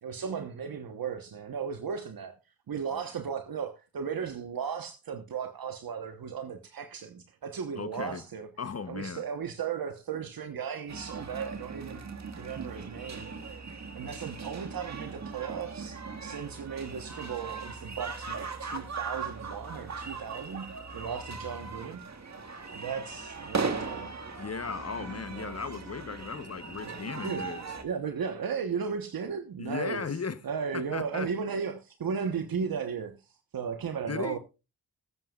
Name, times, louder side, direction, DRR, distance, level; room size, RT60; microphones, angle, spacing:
voice 1, 0.0-2.3 2.7-8.5 8.9-12.1 12.4-13.6 13.9-22.0 22.7-24.1 25.3-25.6 26.8-27.6 27.8-30.2 30.4-34.4, right 6 dB, 70° right, 1.2 m, -36 dB
voice 2, 7.7-8.2 8.6-9.2 24.3-27.6 29.6-30.4 30.7-31.3 34.1-34.4, left 5 dB, 45° left, 1.0 m, -36 dB
sound 1, 10.9-27.8, right 4 dB, 50° right, 1.9 m, -39 dB
21.0 x 7.8 x 2.4 m
cardioid pair, 60°, 36 cm